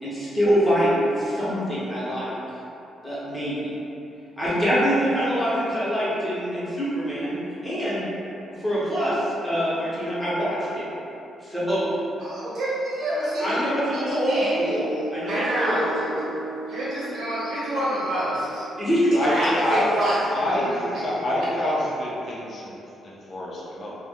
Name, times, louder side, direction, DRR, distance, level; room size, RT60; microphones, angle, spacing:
voice 1, 0.0-2.4 3.0-3.7 4.4-7.3 7.6-8.0 8.6-10.8 11.4-11.9 13.4-14.9 15.1-16.3 18.8-19.2, equal, 10° left, -10 dB, 0.7 m, -24 dB
voice 2, 12.2-14.7 15.3-15.9 16.7-18.7 19.2-21.0, right 1 dB, 60° right, -9 dB, 0.9 m, -28 dB
sound 1, 12.9-20.4, right 2 dB, 80° right, 0.3 m, -38 dB
voice 3, 19.1-19.9 20.3-24.0, left 1 dB, 40° left, -5 dB, 0.4 m, -27 dB
2.6 x 2.0 x 3.4 m, 2.9 s
cardioid pair, 165°, 0 cm